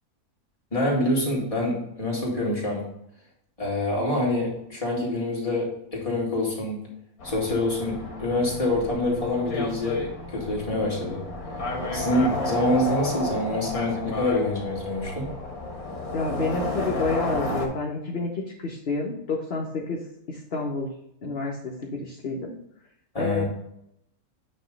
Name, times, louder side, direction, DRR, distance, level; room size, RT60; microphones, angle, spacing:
voice 1, 0.7-2.9 3.6-6.8 7.2-11.2 11.9-15.3 23.1-23.4, left 1 dB, 25° left, -5 dB, 2.2 m, -26 dB
sound 1, 7.2-17.7, left 2 dB, 70° left, 1.8 m, -32 dB
voice 2, 16.1-20.0 20.3-20.9 21.2-22.5 23.2-23.4, left 3 dB, 45° left, -2 dB, 1.0 m, -29 dB
8.9 x 3.0 x 5.1 m, 0.77 s
omnidirectional pair, 1.6 m